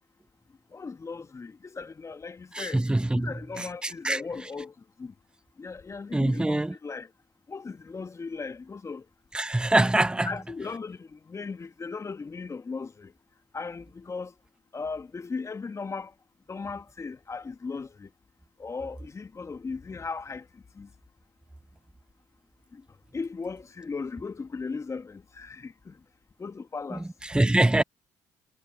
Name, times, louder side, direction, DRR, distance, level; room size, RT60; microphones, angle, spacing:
voice 1, 0.7-2.9 3.1-5.1 5.6-7.1 7.5-9.1 10.2-13.1 13.5-14.3 14.7-16.1 16.5-18.1 18.6-20.9 22.7-22.8 23.1-26.0 26.4-27.1 27.7-27.8, left 4 dB, 30° left, 1.9 m, -37 dB
voice 2, 2.5-3.3 3.6-4.2 6.1-6.7 9.3-10.3 26.9-27.8, right 1 dB, 10° right, 1.2 m, -24 dB
hypercardioid pair, 45°, 9 cm